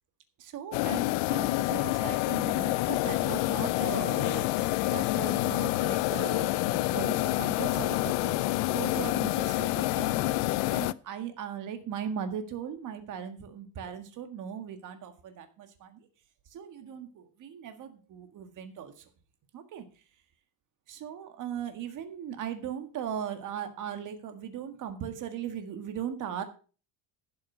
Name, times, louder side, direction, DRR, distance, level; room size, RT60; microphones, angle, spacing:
voice 1, 0.4-10.4 10.7-16.1 16.5-19.1 19.5-19.9 20.9-26.4, right 8 dB, 40° right, 8 dB, 1.8 m, -38 dB
sound 1, 0.7-10.9, left 19 dB, 70° left, 0.6 m, -28 dB
11.5 x 6.4 x 6.1 m, 0.37 s
cardioid pair, 160°, 45 cm